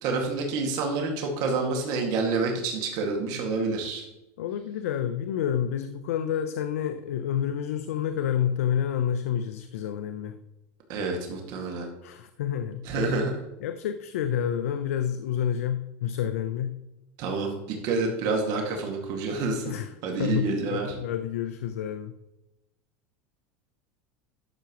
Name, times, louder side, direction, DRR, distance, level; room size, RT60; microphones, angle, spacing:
voice 1, 0.0-4.1 10.9-11.9 12.8-13.4 17.2-19.7 20.0-21.0, right 3 dB, 60° right, 1 dB, 2.1 m, -28 dB
voice 2, 4.4-10.4 12.0-13.1 13.6-16.8 19.6-22.2, left 9 dB, 85° left, 9 dB, 0.6 m, -29 dB
12.0 x 7.0 x 3.0 m, 0.93 s
supercardioid pair, 110°, 8 cm